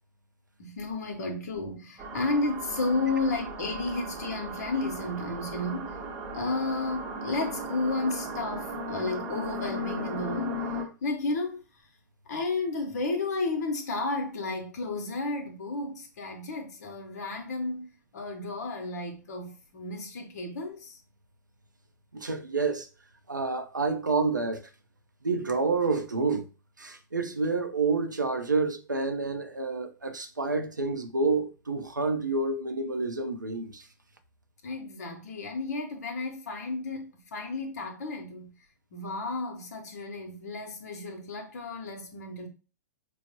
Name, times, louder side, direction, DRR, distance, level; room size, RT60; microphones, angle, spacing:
voice 1, 0.6-5.9 6.3-10.5 11.0-11.6 12.3-17.9 18.1-21.0 34.6-38.5 38.9-42.5, left 3 dB, 60° left, 0.7 m, -32 dB
sound 1, 2.0-10.8, right 1 dB, 30° right, 0.7 m, -36 dB
voice 2, 22.1-22.9 23.3-24.6 25.2-26.5 26.8-33.9, right 3 dB, 90° right, 0.5 m, -28 dB
4.5 x 2.0 x 2.8 m
figure-of-eight pair, 110°, 10 cm